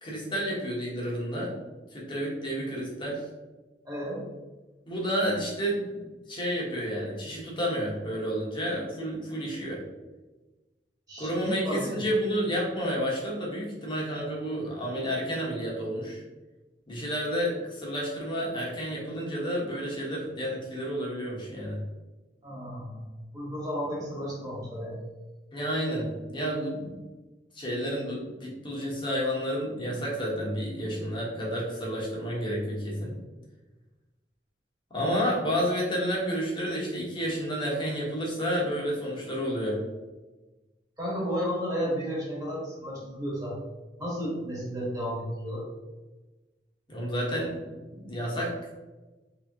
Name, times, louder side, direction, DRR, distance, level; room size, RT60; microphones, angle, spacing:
voice 1, 0.0-1.6 1.9-3.2 4.9-6.0 6.3-9.8 11.2-16.2 16.9-21.8 25.5-26.9 27.5-33.2 34.9-39.8 46.9-48.5, equal, 30° left, -4 dB, 1.1 m, -30 dB
voice 2, 3.8-4.2 11.1-12.0 22.4-23.0 23.3-25.0 41.0-43.6 44.0-45.7, equal, 20° right, -5 dB, 1.4 m, -33 dB
3.3 x 2.9 x 3.5 m, 1.1 s
head